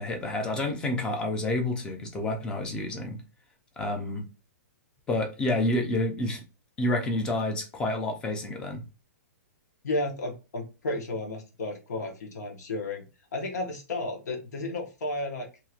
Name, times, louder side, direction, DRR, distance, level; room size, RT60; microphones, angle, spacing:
voice 1, 0.0-3.2 3.8-4.3 5.1-6.4 6.8-8.8, left 1 dB, 10° left, 0.5 m, -29 dB
voice 2, 9.8-13.0 13.3-15.5, left 2 dB, 80° left, 1.2 m, -33 dB
3.0 x 2.8 x 2.4 m
hypercardioid pair, 165°, 9 cm